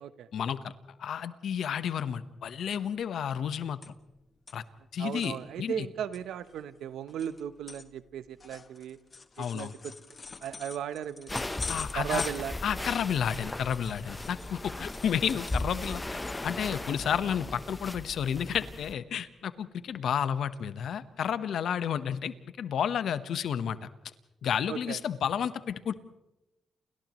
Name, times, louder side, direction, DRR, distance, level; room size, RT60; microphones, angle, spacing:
voice 1, 0.3-0.7 1.0-3.9 4.5-4.6 4.9-5.9 9.4-9.7 11.7-12.2 12.6-23.8 24.4-25.9, left 8 dB, 75° left, 12 dB, 1.1 m, -31 dB
sound 1, 3.8-4.2 4.5-4.6 5.0-5.3 5.8-5.9 6.1-14.6 14.9-16.6 17.0-17.2 17.5-17.8 18.8-19.4 19.8-20.3 20.5-20.6 21.2-21.3, left 4 dB, 40° left, 1.7 m, -45 dB
voice 2, 5.0-9.0 9.4-9.9 10.4-11.4 11.9-12.6 24.7-25.0, right 9 dB, 80° right, 13 dB, 0.9 m, -36 dB
sound 2, 11.3-18.9, left 2 dB, 20° left, 1.0 m, -37 dB
30.0 x 29.0 x 3.1 m, 0.94 s
supercardioid pair, 60°, 0 cm